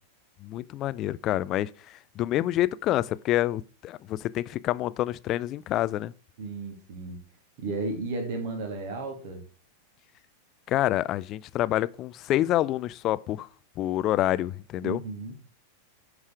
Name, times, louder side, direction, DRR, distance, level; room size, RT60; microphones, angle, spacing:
voice 1, 0.4-6.1 10.7-13.5 13.8-15.0, left 14 dB, 35° left, 0.4 m, -27 dB
voice 2, 6.4-7.2 7.6-9.4 14.8-15.4, right 2 dB, 50° right, 2.6 m, -34 dB
11.0 x 4.8 x 4.8 m
figure-of-eight pair, 90°, 0 cm